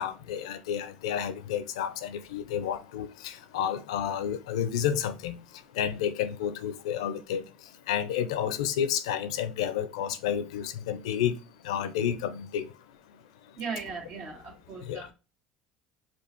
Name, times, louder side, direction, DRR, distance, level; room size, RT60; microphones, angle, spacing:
voice 1, 0.0-5.4 5.8-7.4 7.9-11.3 11.6-12.7 14.8-15.0, left 9 dB, 90° left, 0.5 m, -30 dB
voice 2, 13.6-15.1, right 5 dB, 60° right, 1.9 m, -38 dB
4.4 x 2.4 x 4.3 m
supercardioid pair, 85°, 3 cm